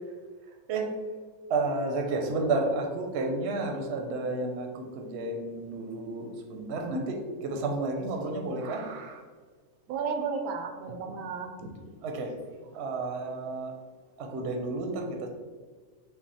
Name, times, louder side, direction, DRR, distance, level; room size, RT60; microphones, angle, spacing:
voice 1, 1.5-9.2 12.0-12.3 12.7-13.7 14.2-15.3, right 3 dB, 55° right, 3 dB, 0.8 m, -31 dB
voice 2, 9.9-11.9, right 5 dB, 85° right, 5 dB, 1.1 m, -33 dB
6.0 x 2.1 x 4.1 m, 1.5 s
omnidirectional pair, 1.5 m